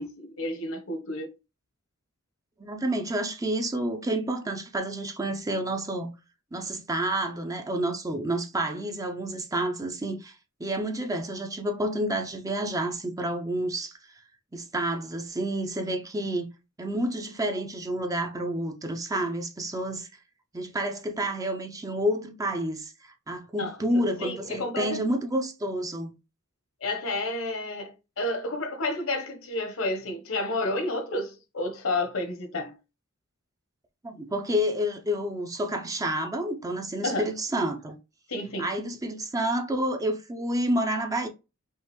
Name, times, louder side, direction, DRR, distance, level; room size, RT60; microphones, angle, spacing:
voice 1, 0.0-1.3 23.5-25.0 26.8-32.7 37.0-37.3 38.3-38.7, left 2 dB, 70° left, 1.0 m, -31 dB
voice 2, 2.6-6.1 6.5-14.0 14.5-16.5 16.8-20.1 20.5-26.1 34.0-37.9 38.6-41.3, right 1 dB, 15° right, 0.5 m, -29 dB
5.5 x 2.5 x 3.0 m
head